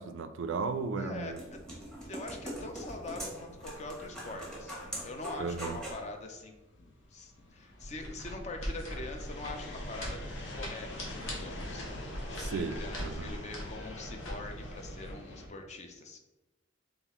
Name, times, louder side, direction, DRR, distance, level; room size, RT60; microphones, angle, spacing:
voice 1, 0.0-1.4 5.4-5.8 12.4-13.3, right 4 dB, 65° right, 10 dB, 0.3 m, -35 dB
sound 1, 0.8-6.1, equal, 5° left, 1.0 m, -43 dB
voice 2, 1.0-1.3 2.1-10.2 10.6-16.2, left 2 dB, 35° left, 4 dB, 0.5 m, -43 dB
sound 2, 4.6-15.5, left 1 dB, 60° left, 0.8 m, -46 dB
sound 3, 7.8-15.1, equal, 75° left, 1.2 m, -41 dB
3.9 x 3.6 x 3.0 m, 1.1 s
head